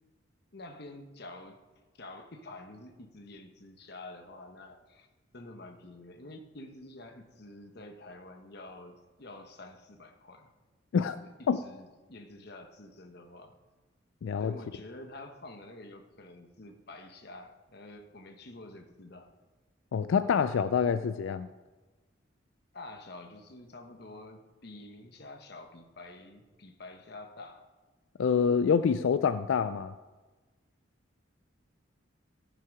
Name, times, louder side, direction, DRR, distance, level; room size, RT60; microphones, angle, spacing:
voice 1, 0.5-1.6 1.9-5.1 5.3-10.5 11.2-13.5 14.4-19.3 22.7-27.6, left 2 dB, 50° left, 5 dB, 1.0 m, -48 dB
voice 2, 14.2-14.5 19.9-21.5 28.2-29.9, left 6 dB, 75° left, 12 dB, 0.3 m, -26 dB
14.5 x 5.7 x 4.8 m, 1.2 s
head